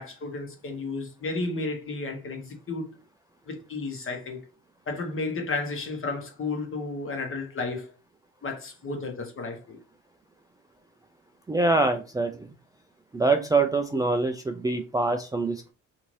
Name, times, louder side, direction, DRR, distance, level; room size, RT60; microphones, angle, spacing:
voice 1, 0.0-3.0 3.5-4.5 4.9-7.9 8.4-9.8, left 3 dB, 45° left, 1.1 m, -33 dB
voice 2, 11.5-12.5 13.1-15.7, right 3 dB, 10° right, 0.3 m, -24 dB
2.7 x 2.6 x 3.1 m
supercardioid pair, 75°, 30 cm